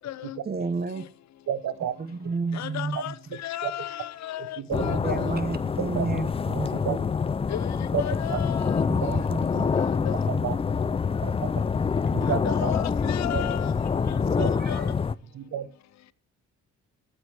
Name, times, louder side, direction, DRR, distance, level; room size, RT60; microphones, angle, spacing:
voice 1, 0.4-1.0 2.0-3.2 4.8-7.0 8.9-9.7 10.3-10.4 12.1-12.2 14.6-14.9, right 4 dB, 30° right, 1.1 m, -32 dB
voice 2, 1.5-1.9 3.6-3.7 4.6-5.0 5.8-6.0 6.7-6.9 7.9-8.0 8.3-8.4 9.0-9.1 10.4-10.5 11.2-11.3 12.1-12.7 13.3-13.4 14.3-14.5 15.3-15.7, right 9 dB, 65° right, 1.0 m, -30 dB
voice 3, 2.6-3.1 3.4-5.3 7.5-7.6 8.0-8.7 10.1-10.2 12.5-13.7 14.4-14.8, left 12 dB, 65° left, 0.6 m, -34 dB
sound 1, 4.7-15.1, left 5 dB, 20° left, 0.4 m, -26 dB
14.0 x 8.0 x 3.0 m
cardioid pair, 90°, 30 cm